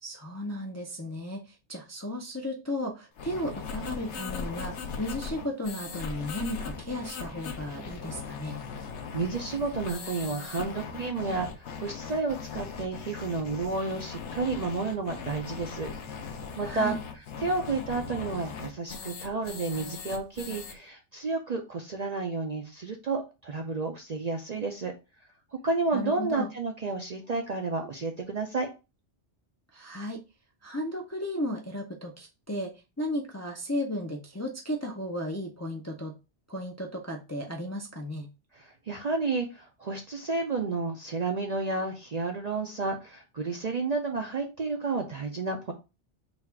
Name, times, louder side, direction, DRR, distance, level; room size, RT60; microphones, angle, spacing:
voice 1, 0.0-8.6 16.6-17.0 25.9-26.5 29.7-30.2 30.6-32.7 33.0-36.1 36.5-38.3, left 1 dB, 20° left, -1 dB, 0.5 m, -34 dB
sound 1, 3.2-20.7, left 5 dB, 75° left, 1.0 m, -39 dB
voice 2, 9.1-15.9 16.6-16.9 17.4-24.9 25.6-28.7 38.6-45.7, right 3 dB, 50° right, 3 dB, 0.5 m, -31 dB
4.0 x 2.4 x 4.3 m, 0.28 s
omnidirectional pair, 1.2 m